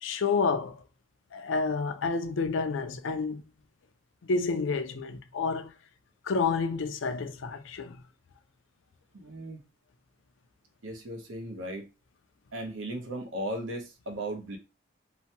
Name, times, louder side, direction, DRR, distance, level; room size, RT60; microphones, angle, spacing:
voice 1, 0.0-0.8 1.3-3.4 4.2-5.7 6.2-8.0, left 4 dB, 80° left, 0.5 m, -29 dB
voice 2, 9.1-9.6 10.8-11.8 12.5-14.6, right 1 dB, 80° right, 0.8 m, -36 dB
2.8 x 2.2 x 2.8 m
head